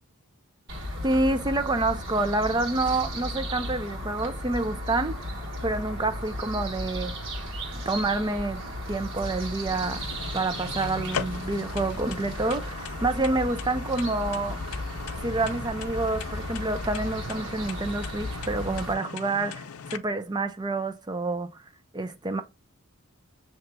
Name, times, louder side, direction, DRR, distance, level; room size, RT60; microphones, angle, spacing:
sound 1, 0.7-18.9, equal, 55° right, 1.5 m, -35 dB
voice 1, 1.0-5.2 5.6-7.2 7.9-8.6 8.9-10.1 10.3-14.6 15.2-21.6 21.9-22.4, right 2 dB, 20° right, 0.4 m, -28 dB
sound 2, 9.7-20.0, left 6 dB, 85° left, 0.5 m, -39 dB
7.8 x 2.9 x 2.2 m
head